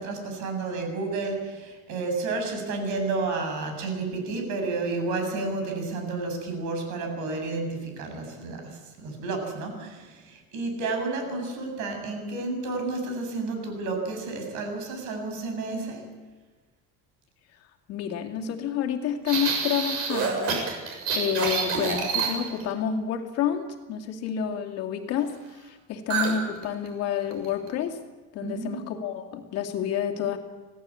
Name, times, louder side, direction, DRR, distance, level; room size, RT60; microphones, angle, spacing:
voice 1, 0.0-16.0 28.4-28.8, right 3 dB, 65° right, 4 dB, 7.7 m, -31 dB
voice 2, 17.9-28.0 28.3-30.4, left 8 dB, 50° left, 3 dB, 2.5 m, -29 dB
sound 1, 19.3-22.7 26.1-26.4 26.6-26.9 27.3-27.7, right 5 dB, 50° right, 6.9 m, -27 dB
26.0 x 17.5 x 8.6 m, 1.3 s
cardioid pair, 175°, 32 cm